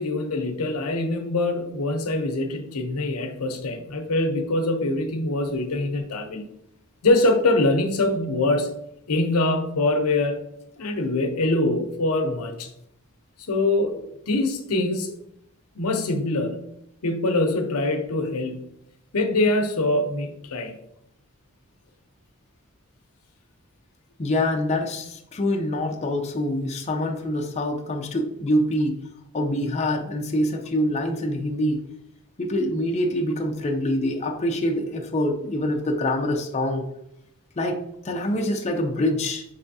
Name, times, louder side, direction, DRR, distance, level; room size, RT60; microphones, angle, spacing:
voice 1, 0.0-6.4 7.0-8.7 9.1-10.4 10.8-12.7 13.5-15.1 15.7-16.7 17.0-18.6 19.1-20.7, left 2 dB, 85° left, 6 dB, 0.7 m, -24 dB
voice 2, 24.2-29.0 29.3-31.8 32.4-36.9 37.6-39.4, left 1 dB, 30° left, 1 dB, 0.5 m, -25 dB
5.5 x 3.4 x 2.6 m, 0.78 s
head